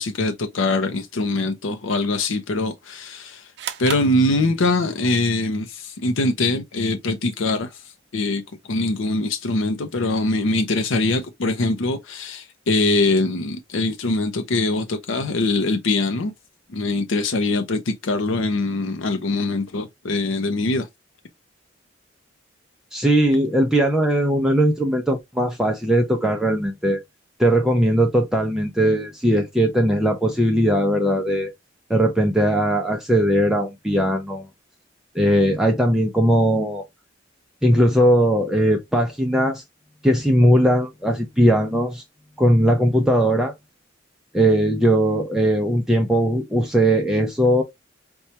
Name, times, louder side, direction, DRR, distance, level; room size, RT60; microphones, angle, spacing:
voice 1, 0.0-3.4 3.8-7.7 8.1-8.4 8.7-16.3 16.7-20.9, left 2 dB, 85° left, 0.6 m, -23 dB
sound 1, 3.6-5.0, right 8 dB, 60° right, 0.5 m, -34 dB
voice 2, 22.9-27.0 27.4-31.5 31.9-34.5 35.1-36.8 37.6-39.6 40.0-42.0 42.4-43.5 44.3-47.6, equal, 5° right, 0.4 m, -19 dB
4.3 x 2.3 x 2.7 m
head